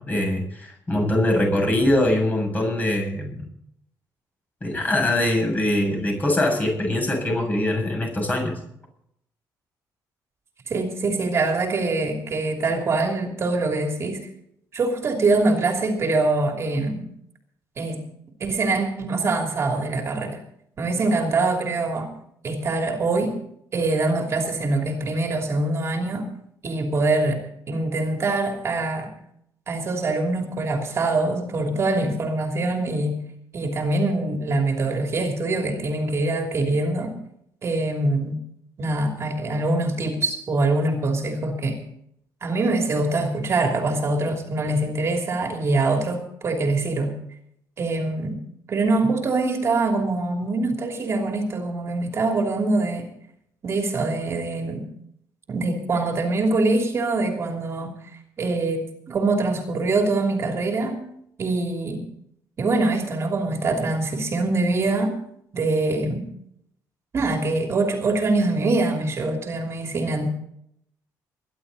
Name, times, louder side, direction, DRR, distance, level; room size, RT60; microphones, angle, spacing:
voice 1, 0.0-3.5 4.6-8.5, left 1 dB, 25° left, 2 dB, 7.2 m, -23 dB
voice 2, 10.7-14.3 14.7-17.1 17.8-18.0 18.4-20.4 20.8-22.1 22.4-23.3 23.7-26.3 26.6-27.4 27.7-29.1 29.7-33.2 33.5-37.1 37.6-38.4 38.8-41.8 42.4-47.2 47.8-48.4 48.7-53.1 53.6-54.8 55.5-58.1 58.4-61.0 61.4-62.0 62.6-65.1 65.5-66.3 67.1-70.3, right 2 dB, 40° right, 3 dB, 3.0 m, -24 dB
22.0 x 11.5 x 4.1 m, 0.72 s
cardioid pair, 135°, 7 cm